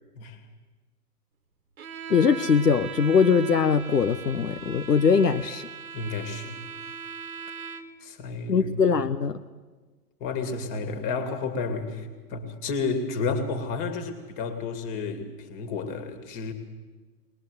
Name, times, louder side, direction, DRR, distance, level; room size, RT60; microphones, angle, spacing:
Bowed string instrument, 1.8-8.1, right 6 dB, 60° right, 1.5 m, -39 dB
voice 1, 2.1-5.7 8.5-9.4, left 6 dB, 75° left, 9 dB, 0.9 m, -21 dB
voice 2, 5.9-6.7 7.6-8.7 10.2-16.5, left 4 dB, 25° left, 8 dB, 2.3 m, -31 dB
21.0 x 20.0 x 7.9 m, 1.3 s
figure-of-eight pair, 110°, 48 cm